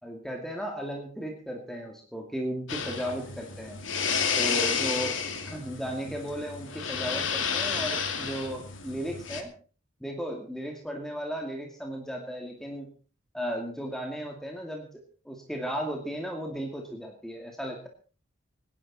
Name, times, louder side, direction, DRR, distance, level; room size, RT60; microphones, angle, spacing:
voice 1, 0.0-3.8 4.4-5.2 5.5-9.5 10.0-12.9 13.3-17.9, equal, ahead, 1 dB, 2.3 m, -35 dB
sound 1, 2.7-9.4, left 6 dB, 85° left, 2.4 m, -31 dB
24.5 x 11.0 x 4.2 m, 0.39 s
head